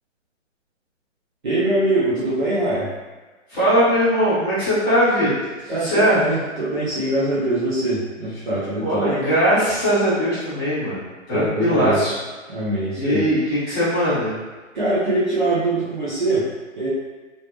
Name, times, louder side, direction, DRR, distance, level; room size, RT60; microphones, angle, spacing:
voice 1, 1.4-2.9 5.7-9.2 11.3-12.0 12.5-13.2 14.7-16.5 16.8-16.9, right 2 dB, 40° right, -9 dB, 0.7 m, -23 dB
voice 2, 3.5-5.3 5.6-6.2 8.5-12.1 13.0-14.3, equal, 10° left, -16 dB, 1.5 m, -20 dB
3.4 x 2.7 x 3.1 m, 1.3 s
hypercardioid pair, 170°, 38 cm